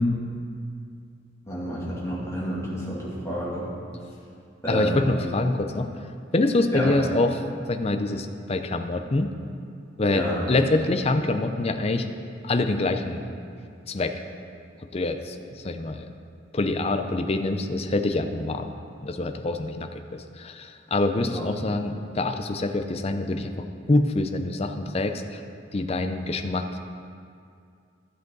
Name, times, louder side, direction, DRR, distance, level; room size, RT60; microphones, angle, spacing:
voice 1, 1.5-3.7 4.6-5.1 6.7-7.0 10.1-10.4 21.2-21.4, equal, 15° left, -8 dB, 2.6 m, -29 dB
voice 2, 4.7-5.9 6.3-7.4 7.7-9.3 10.0-12.1 12.4-13.2 13.9-14.1 14.9-15.4 15.6-16.1 16.5-18.7 19.0-23.5 23.9-25.4 25.7-26.8, left 2 dB, 30° left, 7 dB, 0.5 m, -25 dB
13.0 x 7.8 x 4.0 m, 2.4 s
head